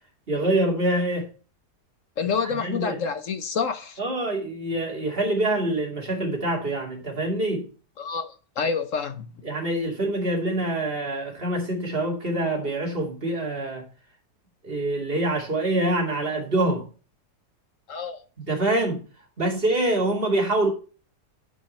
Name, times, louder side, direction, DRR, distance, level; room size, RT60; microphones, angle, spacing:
voice 1, 0.3-1.3 2.6-3.0 4.0-7.7 9.4-13.9 14.6-16.9 18.4-19.0 19.4-20.7, right 1 dB, 35° right, 2.5 m, -25 dB
voice 2, 2.2-4.0 8.0-9.3 17.9-18.2, left 5 dB, 55° left, 1.1 m, -28 dB
10.5 x 5.1 x 4.2 m
omnidirectional pair, 1.7 m